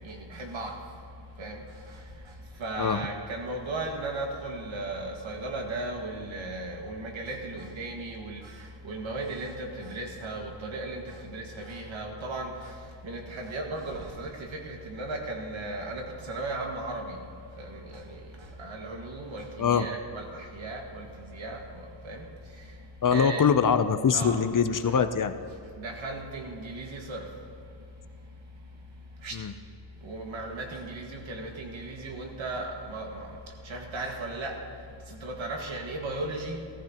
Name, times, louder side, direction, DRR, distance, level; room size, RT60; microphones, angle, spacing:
voice 1, 0.0-0.8 1.4-1.6 1.9-2.0 2.6-12.8 13.0-17.2 17.6-22.3 23.1-23.5 24.1-24.4 25.8-27.3 29.2-29.4 30.0-33.4 33.6-34.6 35.1-36.7, right 2 dB, 85° right, 1 dB, 1.9 m, -36 dB
voice 2, 23.0-25.3 29.3-29.5, left 6 dB, 45° left, 10 dB, 0.6 m, -23 dB
16.5 x 15.0 x 3.0 m, 2.5 s
wide cardioid pair, 100°, 46 cm